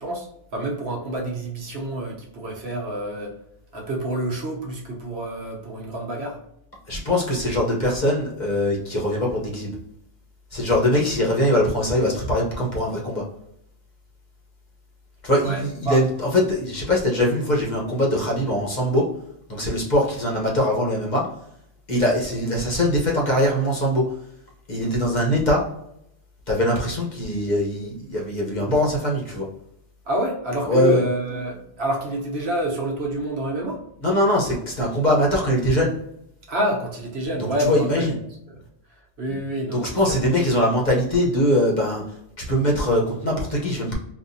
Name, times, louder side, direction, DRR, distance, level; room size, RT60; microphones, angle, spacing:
voice 1, 0.0-3.4 3.7-6.4 15.4-16.0 30.1-33.8 36.5-38.1 38.5-38.6 39.2-40.2, right 1 dB, 70° right, -1 dB, 1.2 m, -28 dB
voice 2, 6.9-9.8 10.5-13.2 15.2-19.1 19.5-21.3 21.9-24.1 24.7-25.7 26.5-29.5 30.6-31.0 34.0-35.9 37.4-38.2 39.3-39.4 39.7-42.0 42.5-43.9, left 1 dB, 45° left, -2 dB, 1.0 m, -22 dB
3.9 x 2.5 x 2.6 m, 0.77 s
omnidirectional pair, 1.1 m